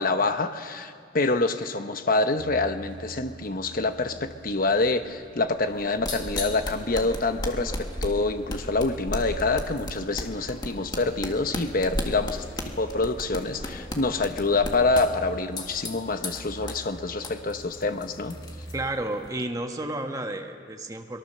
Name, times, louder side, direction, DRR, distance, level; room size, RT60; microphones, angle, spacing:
voice 1, 0.0-7.8 8.0-12.4 12.8-18.3, left 3 dB, 50° left, 8 dB, 1.0 m, -26 dB
Truck, 2.4-18.9, right 1 dB, 80° right, 2.0 m, -46 dB
sound 1, 5.7-19.4, left 1 dB, 20° left, 1.7 m, -36 dB
voice 2, 18.7-21.2, right 1 dB, 20° right, 4 dB, 1.3 m, -31 dB
23.0 x 22.0 x 6.8 m, 2.2 s
head